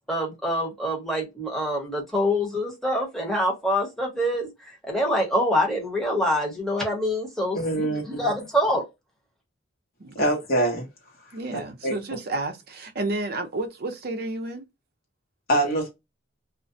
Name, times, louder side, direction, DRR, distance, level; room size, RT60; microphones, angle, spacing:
voice 1, 0.1-8.8, equal, ahead, 0.9 m, -25 dB
voice 2, 7.5-8.3 10.1-10.9 11.8-12.0 15.5-15.9, right 1 dB, 50° left, 1.0 m, -24 dB
voice 3, 11.3-14.7, right 2 dB, 55° right, 0.5 m, -31 dB
2.4 x 2.1 x 2.6 m
head